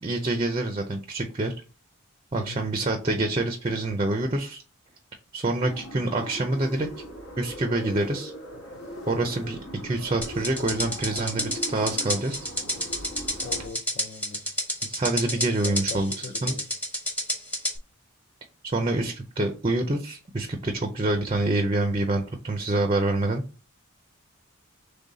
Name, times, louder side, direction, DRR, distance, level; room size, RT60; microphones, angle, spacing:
voice 1, 0.0-1.5 2.3-4.6 5.3-6.9 7.4-8.3 9.1-9.6 9.8-12.4 14.9-16.1 16.4-16.5 18.7-23.4, right 2 dB, 25° right, 0.4 m, -26 dB
voice 2, 2.3-2.7 13.4-14.4 15.3-16.7, left 4 dB, 40° left, 0.4 m, -41 dB
sound 1, 5.6-13.7, equal, 70° left, 1.2 m, -40 dB
sound 2, 10.2-17.8, equal, 5° left, 0.8 m, -29 dB
3.8 x 3.3 x 4.0 m
head